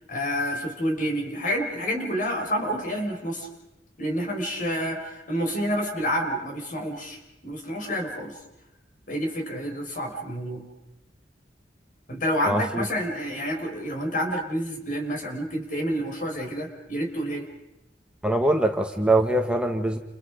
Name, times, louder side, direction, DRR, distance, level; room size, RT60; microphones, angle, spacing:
voice 1, 0.1-3.5 4.0-8.3 9.1-10.6 12.1-17.5, equal, 50° left, 2 dB, 5.7 m, -29 dB
voice 2, 12.5-12.8 18.2-20.0, right 1 dB, 5° right, 3 dB, 1.5 m, -23 dB
30.0 x 29.5 x 5.2 m, 0.92 s
head